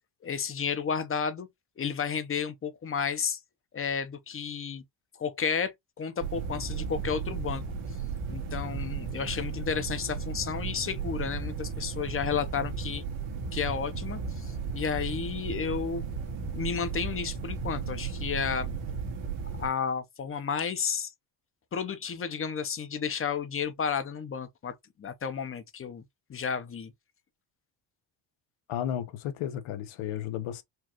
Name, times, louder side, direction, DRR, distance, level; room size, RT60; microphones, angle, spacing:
voice 1, 0.2-1.5 1.8-3.4 3.7-4.8 5.2-7.6 8.3-13.0 13.5-16.0 16.5-18.7 19.6-21.1 21.7-26.0 26.3-26.9, left 6 dB, 30° left, 0.7 m, -32 dB
sound 1, 6.2-19.7, right 5 dB, 85° right, 1.3 m, -35 dB
voice 2, 28.7-30.6, left 10 dB, 90° left, 0.9 m, -33 dB
4.5 x 2.3 x 2.8 m
cardioid pair, 135°, 47 cm